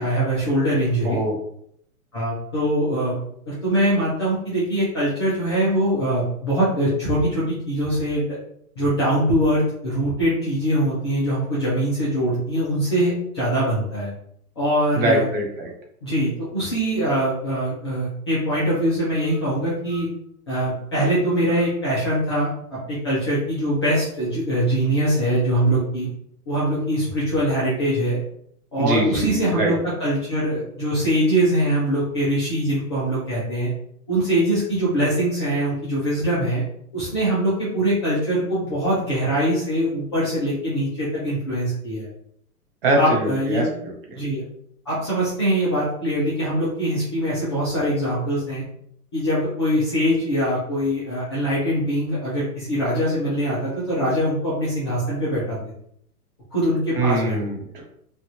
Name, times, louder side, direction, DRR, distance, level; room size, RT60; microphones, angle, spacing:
voice 1, 0.0-1.2 2.1-3.2 3.5-8.3 8.8-14.1 14.6-15.3 16.0-20.1 20.5-26.1 26.5-28.2 28.7-33.7 34.1-36.6 36.9-42.1 42.9-43.7 44.1-44.4 44.9-48.6 49.1-55.6 56.5-57.4, equal, 20° left, -9 dB, 0.4 m, -23 dB
voice 2, 14.9-15.7 28.8-29.7 42.8-44.2 57.0-57.8, right 2 dB, 40° right, 0 dB, 0.8 m, -23 dB
3.0 x 2.4 x 2.7 m, 0.70 s
hypercardioid pair, 155°, 46 cm